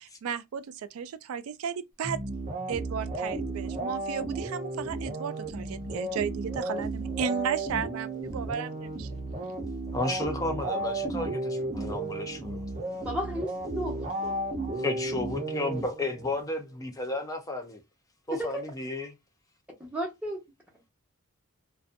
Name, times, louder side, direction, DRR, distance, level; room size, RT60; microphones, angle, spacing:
voice 1, 0.0-2.2 2.7-9.2, right 7 dB, 85° right, 0.3 m, -34 dB
sound 1, 2.0-16.3, right 2 dB, 35° right, 0.7 m, -34 dB
voice 2, 9.9-12.7 14.7-17.8 18.3-19.1, left 2 dB, 15° left, 0.5 m, -33 dB
voice 3, 13.0-14.4 18.3-18.6 19.8-20.4, equal, 5° right, 0.8 m, -34 dB
2.5 x 2.3 x 2.5 m
head